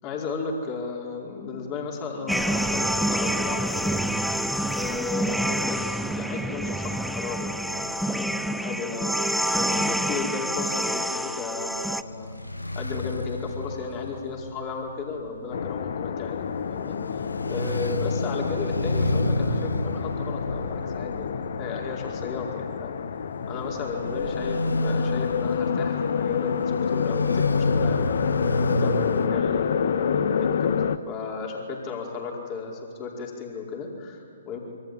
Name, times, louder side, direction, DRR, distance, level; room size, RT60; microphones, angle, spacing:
voice 1, 0.0-4.1 4.3-12.4 12.7-23.0 23.5-28.1 28.6-34.6, left 5 dB, 30° left, -1 dB, 4.7 m, -34 dB
sound 1, 2.3-12.0, right 1 dB, ahead, 0.7 m, -27 dB
sound 2, 12.0-29.3, left 1 dB, 85° left, 1.6 m, -30 dB
sound 3, 15.5-31.0, left 7 dB, 55° left, 1.1 m, -28 dB
26.5 x 24.0 x 9.4 m, 2.3 s
figure-of-eight pair, 130°, 0 cm